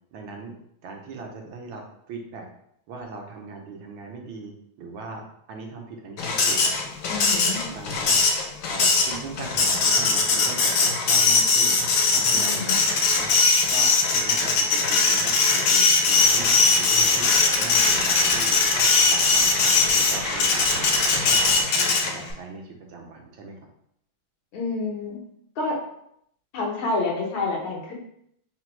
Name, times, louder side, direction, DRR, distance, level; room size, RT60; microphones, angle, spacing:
voice 1, 0.1-0.5 0.8-2.5 2.9-6.6 7.7-8.2 8.7-11.8 12.1-13.3 13.7-17.3 17.6-18.6 19.1-22.6 22.9-23.6, right 3 dB, 85° right, 1 dB, 1.6 m, -39 dB
Printer, 6.2-22.3, left 4 dB, 70° left, 1.2 m, -20 dB
voice 2, 7.1-7.6 12.3-12.8 24.5-25.2 25.6-25.8 26.5-27.9, left 3 dB, 85° left, -2 dB, 1.8 m, -28 dB
sound 1, 16.1-21.6, right 3 dB, 70° right, 1.2 m, -34 dB
4.3 x 2.0 x 4.4 m, 0.73 s
omnidirectional pair, 2.2 m